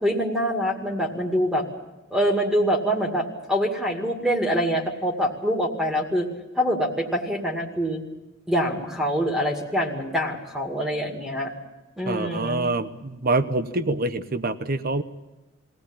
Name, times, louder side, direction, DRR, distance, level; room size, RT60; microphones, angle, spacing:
voice 1, 0.0-1.6 2.1-6.3 6.5-8.0 8.5-11.5 12.0-12.7, equal, ahead, 2 dB, 2.2 m, -25 dB
voice 2, 12.1-15.0, right 2 dB, 45° right, 12 dB, 1.0 m, -25 dB
22.0 x 17.0 x 8.8 m, 1.1 s
head